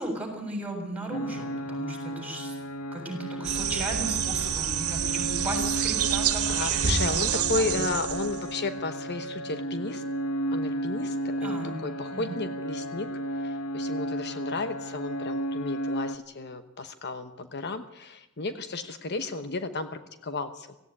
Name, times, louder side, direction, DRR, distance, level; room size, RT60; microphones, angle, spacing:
voice 1, 0.0-2.6 2.9-7.7 11.4-11.8 12.1-12.4, right 1 dB, 5° right, 2 dB, 6.9 m, -36 dB
sound 1, 1.1-16.2, right 1 dB, 75° left, 1.7 m, -34 dB
sound 2, 3.4-8.5, right 8 dB, 80° right, 1.8 m, -28 dB
voice 2, 6.5-10.0 10.5-13.1 13.4-20.8, left 3 dB, 50° left, 9 dB, 1.1 m, -33 dB
17.5 x 16.5 x 9.7 m, 0.94 s
head